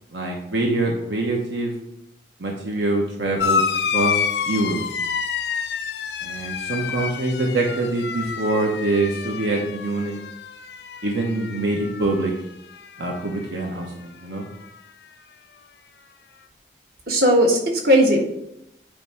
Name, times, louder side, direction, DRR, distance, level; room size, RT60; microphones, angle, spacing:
voice 1, 0.1-1.7 2.4-3.6 3.9-4.8 6.2-10.2 11.0-12.3 13.0-14.5, right 2 dB, 85° right, 0 dB, 1.1 m, -24 dB
sound 1, 3.4-12.4 12.7-13.4 14.5-14.6, left 6 dB, 75° left, 0.5 m, -28 dB
voice 2, 17.1-18.2, equal, 60° right, 0 dB, 1.6 m, -17 dB
9.0 x 3.3 x 6.0 m, 0.82 s
head